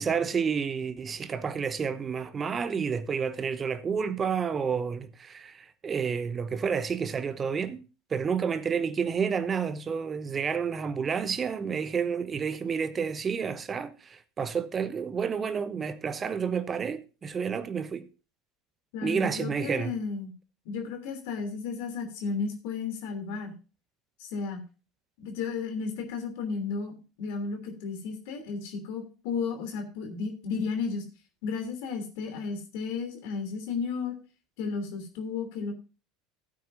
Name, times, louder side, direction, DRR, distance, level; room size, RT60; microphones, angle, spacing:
voice 1, 0.0-7.8 8.1-18.1 19.0-19.9, right 6 dB, 30° right, 0.9 m, -30 dB
voice 2, 18.9-20.3 20.6-23.6 24.2-24.6 25.2-31.0 31.4-34.1 34.6-35.7, left 5 dB, 60° left, 3.1 m, -33 dB
15.5 x 9.0 x 2.6 m
figure-of-eight pair, 70°, 0 cm